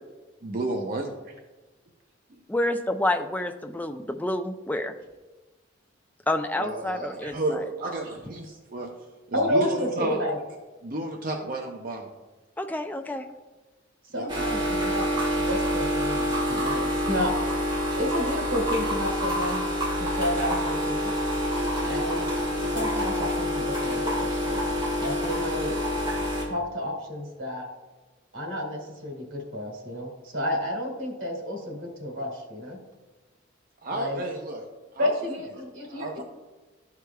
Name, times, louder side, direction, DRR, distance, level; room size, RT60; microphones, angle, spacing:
voice 1, 0.4-1.4 6.6-8.9 9.3-10.2 10.8-12.1 14.1-14.3 33.8-34.7 34.9-35.4 35.9-36.2, right 2 dB, 45° right, 2 dB, 0.6 m, -32 dB
voice 2, 2.5-4.9 6.3-7.6 12.6-13.3, left 1 dB, 10° left, 7 dB, 0.3 m, -28 dB
voice 3, 9.3-10.4 14.1-15.0 15.5-17.3 18.0-19.6 20.0-21.1 21.8-22.2 22.7-24.6 25.0-25.7 26.4-27.7 28.3-32.8 33.9-34.2 35.0-36.2, left 1 dB, 90° right, -1 dB, 2.1 m, -30 dB
sound 1, 14.3-26.4, equal, 25° right, 1.5 m, -27 dB
12.5 x 4.8 x 2.3 m, 1.2 s
head